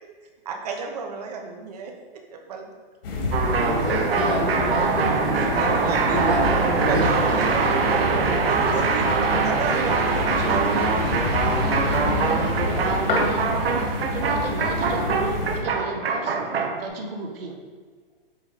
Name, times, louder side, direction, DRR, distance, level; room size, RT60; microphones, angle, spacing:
voice 1, 0.5-1.9 2.3-2.7 5.1-6.3 6.9-7.7 8.7-9.0 9.4-10.6 11.4-11.5, right 5 dB, 40° right, 2 dB, 0.9 m, -33 dB
sound 1, 3.0-15.6, left 2 dB, 70° left, 2.0 m, -28 dB
sound 2, 3.3-16.9, right 5 dB, 90° right, 1.0 m, -24 dB
voice 2, 3.6-6.4 6.8-7.0, right 1 dB, 5° right, -9 dB, 0.6 m, -28 dB
voice 3, 5.9-11.0 11.5-17.6, right 3 dB, 70° right, 2 dB, 1.3 m, -33 dB
Telephone, 11.5-12.0 12.5-13.0, left 5 dB, 35° left, 0.6 m, -47 dB
7.9 x 3.8 x 4.1 m, 1.5 s
hypercardioid pair, 175°, 29 cm